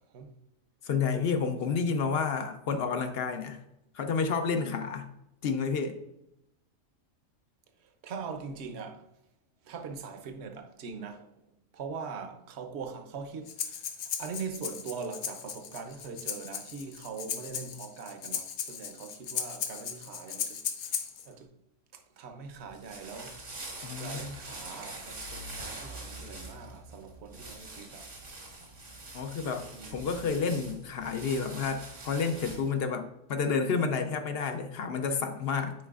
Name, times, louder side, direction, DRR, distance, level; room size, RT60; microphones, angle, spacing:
voice 1, 0.8-3.6 3.9-5.1 5.4-6.0 23.8-24.3 29.1-35.7, left 5 dB, 60° left, 0.7 m, -30 dB
voice 2, 8.0-9.1 9.6-11.3 11.7-21.0 21.2-21.5 21.9-23.6 24.0-28.1 29.7-30.1, right 5 dB, 60° right, 0.9 m, -42 dB
Breathing, 13.5-21.3, left 7 dB, 75° left, 1.0 m, -37 dB
sound 1, 22.5-32.8, right 2 dB, 85° right, 2.1 m, -44 dB
9.5 x 4.1 x 2.4 m
omnidirectional pair, 1.4 m